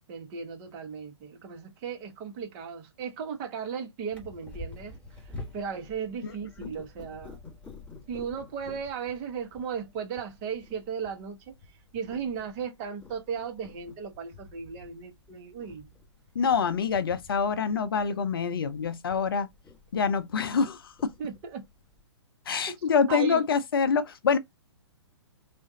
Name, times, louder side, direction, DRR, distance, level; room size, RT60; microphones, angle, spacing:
voice 1, 0.1-4.9 5.5-7.4 8.1-11.5 11.9-15.9 21.2-21.6 23.1-23.4, right 6 dB, 30° right, 1.0 m, -36 dB
Purr, 4.1-22.0, left 3 dB, 10° left, 1.4 m, -49 dB
voice 2, 16.4-19.5 19.9-21.1 22.5-24.4, left 6 dB, 55° left, 0.5 m, -26 dB
3.6 x 2.5 x 3.8 m
figure-of-eight pair, 120°, 15 cm